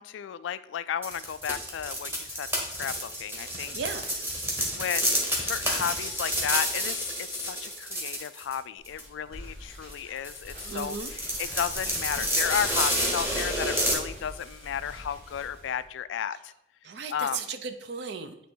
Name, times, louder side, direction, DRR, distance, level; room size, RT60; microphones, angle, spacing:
voice 1, 0.0-3.7 4.8-5.0 5.3-16.5 17.1-17.4, left 8 dB, 75° left, 15 dB, 0.3 m, -33 dB
sound 1, 1.0-8.6 8.9-9.0 9.9-10.0 10.2-13.9, equal, 10° right, 1.1 m, -30 dB
voice 2, 3.7-4.1 10.6-11.1 16.8-18.4, right 5 dB, 60° right, 9 dB, 0.5 m, -36 dB
sound 2, 8.8-15.8, equal, 35° right, 2.3 m, -45 dB
8.2 x 3.1 x 4.4 m, 0.83 s
head